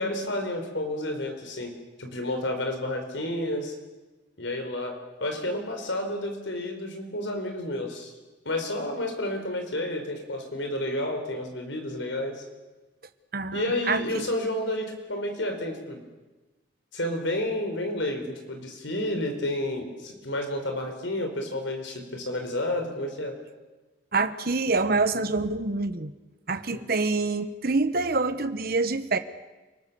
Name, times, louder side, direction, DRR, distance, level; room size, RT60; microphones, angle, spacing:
voice 1, 0.0-1.7 2.0-3.7 4.4-8.1 8.4-12.4 13.5-16.0 16.9-23.4 26.7-26.8, left 1 dB, 75° left, 4 dB, 4.6 m, -30 dB
voice 2, 13.3-14.2 24.1-26.1 26.5-29.2, right 3 dB, 50° right, 11 dB, 1.2 m, -26 dB
29.5 x 19.0 x 7.0 m, 1.2 s
head